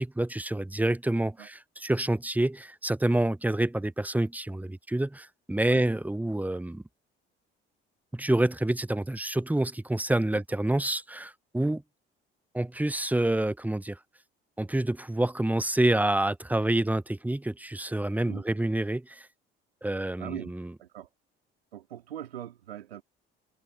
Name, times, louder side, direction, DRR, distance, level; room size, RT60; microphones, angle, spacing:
voice 1, 0.0-6.8 8.1-11.8 12.5-14.0 14.6-19.3 19.8-20.7, right 1 dB, 5° right, 0.9 m, -27 dB
voice 2, 20.2-20.5 20.8-21.1 21.7-23.0, right 11 dB, 80° right, 3.1 m, -41 dB
figure-of-eight pair, 55°, 30 cm